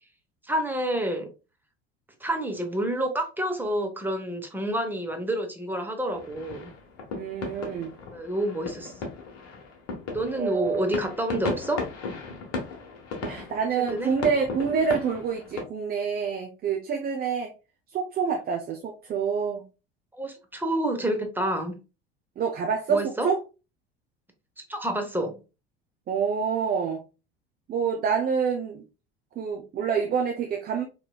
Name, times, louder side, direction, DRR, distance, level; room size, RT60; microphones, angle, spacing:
voice 1, 0.5-1.3 2.2-6.7 8.1-8.9 10.1-11.8 13.9-14.1 20.1-21.8 22.9-23.3 24.6-25.4, right 1 dB, 5° right, 4 dB, 0.9 m, -28 dB
sound 1, 6.1-15.6, left 4 dB, 55° left, 1.2 m, -36 dB
voice 2, 7.2-7.9 10.3-10.9 13.2-17.5 17.9-19.6 22.4-23.4 26.1-27.0 27.7-28.8 29.4-30.8, right 6 dB, 30° right, 3 dB, 0.6 m, -27 dB
3.9 x 3.0 x 2.3 m, 0.31 s
figure-of-eight pair, 65°, 31 cm